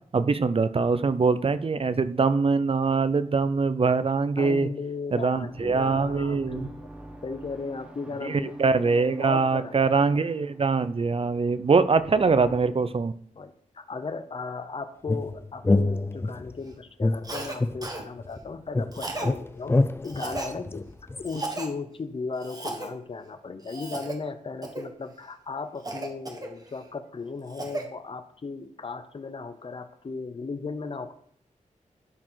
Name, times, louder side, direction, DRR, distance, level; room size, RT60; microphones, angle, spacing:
voice 1, 0.1-4.7 5.1-6.7 8.2-13.2, right 4 dB, 45° right, 13 dB, 0.6 m, -23 dB
voice 2, 4.4-6.9 7.2-10.0 12.2-12.5 13.3-19.8 20.0-20.9 21.2-31.1, left 4 dB, 40° left, 10 dB, 0.8 m, -36 dB
sound 1, 5.1-12.6, right 1 dB, 10° right, 1.6 m, -46 dB
sound 2, 15.1-16.5 17.0-18.4 18.7-21.3, left 2 dB, 20° left, 0.4 m, -26 dB
Cough, 17.2-17.6 17.8-18.0 18.9-19.3 20.0-20.5 21.3-21.7 22.4-22.9 23.6-24.2 24.6-24.9 25.8-26.8 27.3-27.9, right 2 dB, 30° right, 1.6 m, -35 dB
12.0 x 4.8 x 5.7 m, 0.64 s
wide cardioid pair, 120°, 14 cm